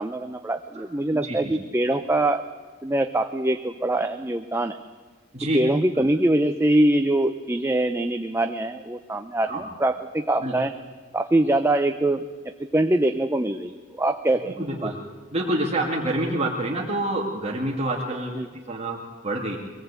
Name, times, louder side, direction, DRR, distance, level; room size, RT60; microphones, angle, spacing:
voice 1, 0.0-2.4 2.8-4.8 5.5-10.7 11.1-12.3 12.6-14.5 14.8-14.9 18.4-18.5, right 1 dB, 15° right, 7 dB, 0.7 m, -23 dB
voice 2, 1.1-1.6 5.3-5.6 6.0-6.1 9.5-9.6 10.4-10.5 14.6-15.0 15.3-18.3 18.7-19.6, right 1 dB, 35° right, -2 dB, 2.2 m, -27 dB
23.5 x 18.5 x 8.2 m, 1.5 s
head